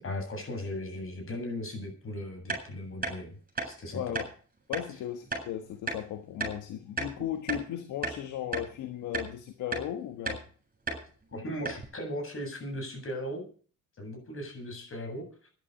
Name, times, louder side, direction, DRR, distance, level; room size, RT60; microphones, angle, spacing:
voice 1, 0.0-3.4 3.6-4.2 11.3-13.4 14.0-15.5, left 1 dB, 45° left, 7.9 m, -37 dB
sound 1, 2.5-2.6 3.0-3.2 3.5-3.7 4.1-4.3 4.7-4.9 5.3-5.4 5.9-6.0 6.4-6.6 7.0-7.7 8.0-8.2 8.5-8.7 9.1-9.3 9.7-9.9 10.2-10.4 10.9-11.0 11.3-11.4 11.6-11.8, right 3 dB, 30° right, 7.8 m, -33 dB
voice 2, 3.9-4.3 4.7-10.4, left 11 dB, 85° left, 1.4 m, -36 dB
11.5 x 11.0 x 8.5 m
cardioid pair, 90°, 30 cm